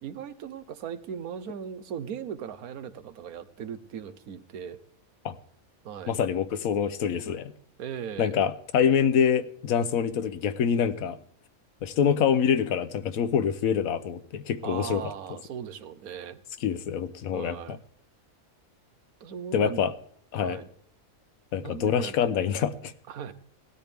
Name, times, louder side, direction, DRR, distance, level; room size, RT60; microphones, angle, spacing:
voice 1, 0.0-4.8 5.8-6.2 7.8-8.4 14.6-16.4 17.3-17.8 19.2-19.8 20.4-20.7 21.5-22.3 23.1-23.3, right 8 dB, 90° right, 13 dB, 1.3 m, -38 dB
voice 2, 6.1-7.5 8.2-11.2 11.8-15.0 16.6-17.8 19.5-19.9 20.3-20.6 21.5-22.9, left 7 dB, 75° left, 13 dB, 1.2 m, -25 dB
19.0 x 13.0 x 3.5 m, 0.65 s
omnidirectional pair, 1.5 m